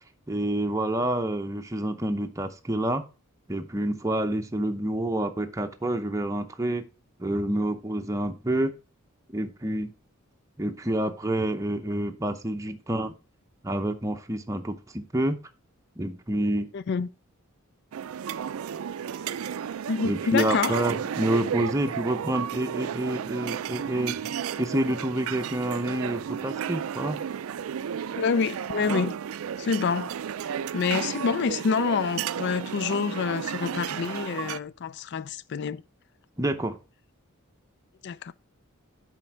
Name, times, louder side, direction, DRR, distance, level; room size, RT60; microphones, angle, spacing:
voice 1, 0.3-3.0 3.5-6.9 7.2-8.7 9.3-9.9 10.6-13.1 13.6-15.4 16.0-16.7 20.0-24.2 24.6-27.2 36.4-36.8, right 1 dB, 15° right, 0.7 m, -28 dB
voice 2, 16.7-17.1 19.9-20.8 28.2-29.1 29.6-30.1 30.4-35.8 38.0-38.3, left 5 dB, 55° left, 0.4 m, -27 dB
sound 1, 17.9-34.6, right 8 dB, 80° right, 0.4 m, -33 dB
7.5 x 5.1 x 4.6 m
head